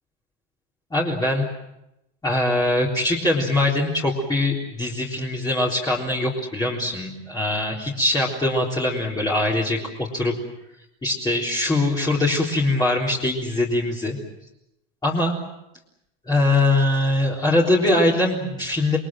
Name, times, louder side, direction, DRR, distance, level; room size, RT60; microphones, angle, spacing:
voice 1, 0.9-1.5 2.2-10.3 11.0-14.2 15.0-15.3 16.3-19.0, left 2 dB, 10° left, -4 dB, 3.8 m, -22 dB
29.0 x 22.0 x 7.6 m, 0.87 s
supercardioid pair, 145°, 32 cm